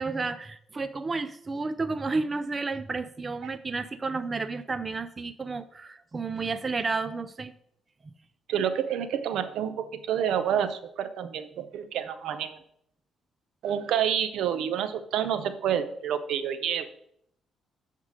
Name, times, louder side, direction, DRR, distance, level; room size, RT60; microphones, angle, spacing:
voice 1, 0.0-7.5, right 3 dB, 30° right, 11 dB, 0.4 m, -31 dB
voice 2, 8.5-12.6 13.6-16.9, right 9 dB, 80° right, 10 dB, 0.6 m, -28 dB
7.2 x 3.7 x 6.2 m, 0.70 s
cardioid pair, 90°, 0 cm